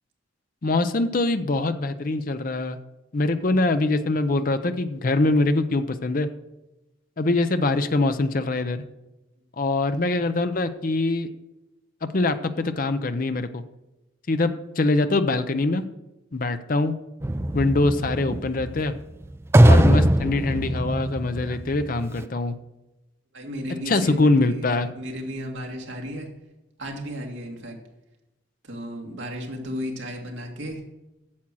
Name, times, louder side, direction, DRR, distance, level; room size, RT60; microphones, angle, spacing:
voice 1, 0.6-2.8 3.1-6.3 7.2-8.8 9.6-11.3 12.0-13.6 14.3-14.5 14.8-15.9 16.3-16.9 17.5-18.9 19.7-22.5 23.9-24.9, left 2 dB, 45° left, 10 dB, 0.6 m, -23 dB
sound 1, 17.2-22.2, right 1 dB, 15° right, 0.3 m, -20 dB
voice 2, 23.3-26.3 26.8-27.8 28.6-30.9, equal, 70° right, 1 dB, 2.1 m, -34 dB
8.6 x 7.3 x 6.2 m, 0.99 s
head